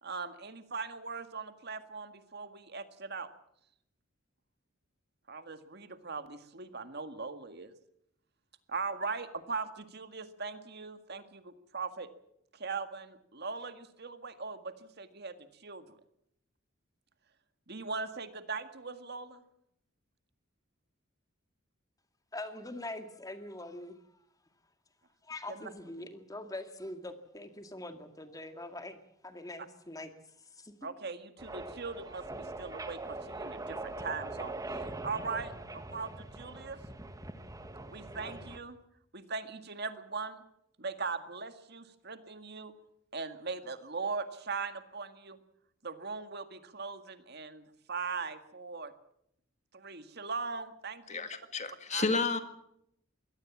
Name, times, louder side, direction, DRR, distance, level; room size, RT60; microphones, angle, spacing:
voice 1, 0.0-3.3 5.3-7.7 8.7-12.1 12.5-15.8 17.7-19.4 25.5-25.7 30.8-34.5 35.0-36.8 37.9-38.8 39.1-40.4 40.8-42.7 43.1-45.4 45.8-48.9 49.7-51.3 51.9-52.1, right 4 dB, 55° right, 10 dB, 1.9 m, -40 dB
voice 2, 22.3-24.0 25.2-30.1 30.5-30.7, left 2 dB, 15° left, 8 dB, 2.1 m, -43 dB
sound 1, 31.4-38.6, right 2 dB, 15° right, 1.5 m, -42 dB
voice 3, 51.1-52.4, left 4 dB, 35° left, 9 dB, 2.0 m, -31 dB
23.0 x 18.0 x 7.3 m, 0.73 s
head